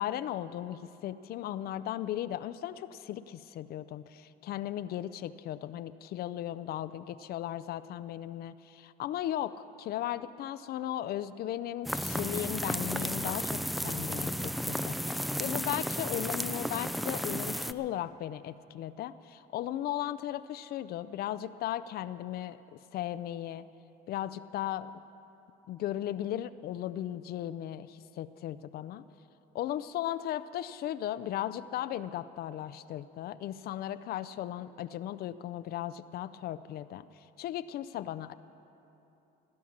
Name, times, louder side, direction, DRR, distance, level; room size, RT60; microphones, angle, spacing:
voice 1, 0.0-23.7 24.1-24.9 25.7-29.0 29.5-37.0 37.4-38.3, left 12 dB, 65° left, 14 dB, 0.5 m, -36 dB
sound 1, 11.8-17.7, equal, ahead, 0.4 m, -33 dB
17.5 x 9.8 x 7.2 m, 2.9 s
cardioid pair, 110°, 17 cm